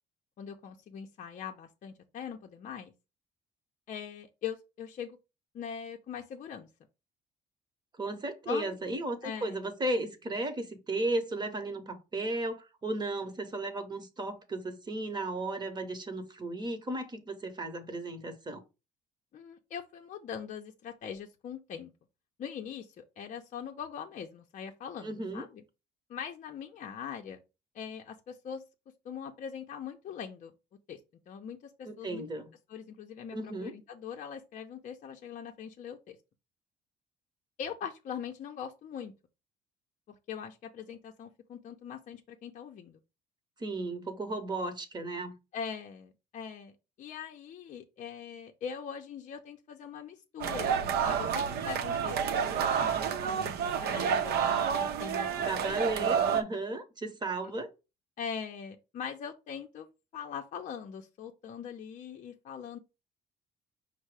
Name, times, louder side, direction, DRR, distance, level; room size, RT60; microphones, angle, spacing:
voice 1, 0.4-2.9 3.9-5.2 5.5-6.7 8.5-9.6 19.3-21.9 22.4-25.6 26.1-27.4 27.7-28.6 29.0-30.5 30.9-31.0 31.3-32.2 32.7-36.2 37.6-39.1 40.1-43.0 45.5-46.7 47.0-52.2 52.6-55.3 56.0-56.6 58.2-59.9 60.1-62.8, left 7 dB, 50° left, 0.5 m, -42 dB
voice 2, 8.0-18.6 25.0-25.5 31.8-32.5 33.3-33.8 43.6-45.4 55.4-57.7, right 2 dB, 25° right, 0.9 m, -35 dB
sound 1, 50.4-56.4, right 7 dB, 70° right, 0.6 m, -29 dB
5.4 x 2.0 x 4.7 m
cardioid pair, 110°, 17 cm